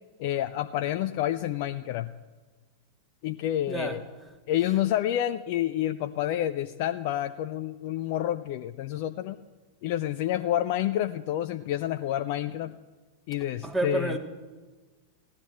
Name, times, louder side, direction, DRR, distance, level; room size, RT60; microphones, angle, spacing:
voice 1, 0.2-2.1 3.2-4.0 4.5-9.4 9.8-12.7 13.3-14.2, left 12 dB, 50° left, 0.5 m, -29 dB
voice 2, 3.7-4.3 13.6-14.2, right 2 dB, 5° right, 1.8 m, -30 dB
15.5 x 11.5 x 7.8 m
figure-of-eight pair, 90°, 0 cm